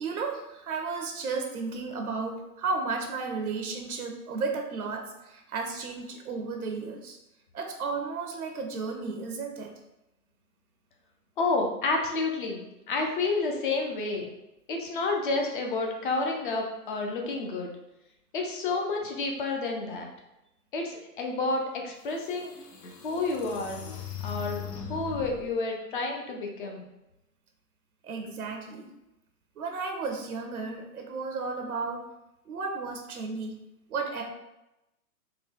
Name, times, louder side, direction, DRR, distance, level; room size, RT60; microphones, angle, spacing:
voice 1, 0.0-7.2 7.5-9.7 28.0-28.9 29.6-32.0 32.5-33.5 33.9-34.2, right 4 dB, 70° right, 3 dB, 0.7 m, -33 dB
voice 2, 11.4-12.6 12.9-14.3 14.7-17.7 18.3-20.1 20.7-22.5 23.0-23.8 24.2-24.6 24.9-26.8, left 3 dB, 35° left, 2 dB, 0.5 m, -30 dB
sound 1, 21.7-21.8 22.4-25.5, left 9 dB, 80° left, 0.7 m, -39 dB
3.9 x 2.2 x 3.3 m, 0.93 s
figure-of-eight pair, 125°, 46 cm